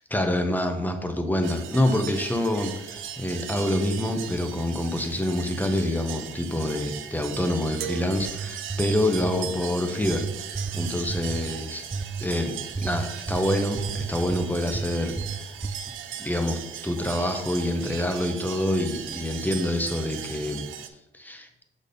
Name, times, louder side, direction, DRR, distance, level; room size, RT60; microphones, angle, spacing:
voice 1, 0.1-11.8 12.2-12.5 12.8-15.1 16.2-20.7 21.1-21.5, left 1 dB, 10° left, 5 dB, 1.0 m, -26 dB
sound 1, 1.4-20.9, right 10 dB, 85° right, 0.6 m, -38 dB
sound 2, 8.2-9.5 10.0-11.4 11.9-12.3 12.7-14.9 15.2-15.8, right 4 dB, 10° right, 0.4 m, -32 dB
6.2 x 4.3 x 5.3 m, 0.93 s
cardioid pair, 90°, 20 cm